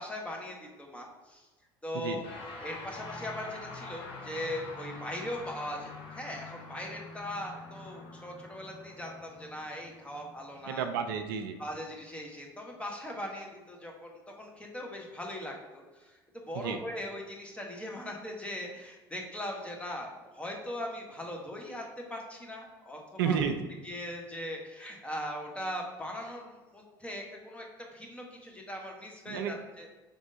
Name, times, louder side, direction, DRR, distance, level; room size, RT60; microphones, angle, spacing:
voice 1, 0.0-1.4 1.8-2.3 2.6-10.9 11.6-16.2 16.5-23.0 23.3-23.4 23.8-27.6 27.9-29.9, left 1 dB, 10° left, 0 dB, 1.1 m, -40 dB
voice 2, 1.9-2.3 10.7-11.6 16.5-16.8 23.2-23.7 29.3-29.5, right 7 dB, 75° right, 7 dB, 0.4 m, -31 dB
sound 1, 2.2-11.7, left 3 dB, 50° left, 1.0 m, -46 dB
5.3 x 3.4 x 2.7 m, 1.2 s
hypercardioid pair, 70°, 11 cm